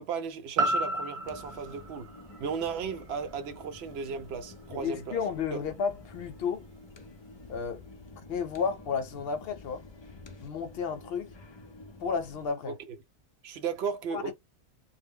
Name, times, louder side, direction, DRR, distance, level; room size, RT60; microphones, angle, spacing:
voice 1, 0.0-2.1 2.4-5.2 5.5-5.6 12.7-12.8 13.4-14.3, right 6 dB, 75° right, 0.8 m, -35 dB
sound 1, 0.6-4.6 5.1-5.2, right 2 dB, 50° right, 0.4 m, -33 dB
sound 2, 1.2-12.5, left 2 dB, 45° left, 0.3 m, -49 dB
voice 2, 4.7-6.6 7.5-7.8 8.2-9.8 10.4-11.3 12.0-12.7 14.1-14.3, left 6 dB, 70° left, 0.8 m, -32 dB
2.1 x 2.1 x 3.4 m
omnidirectional pair, 1.1 m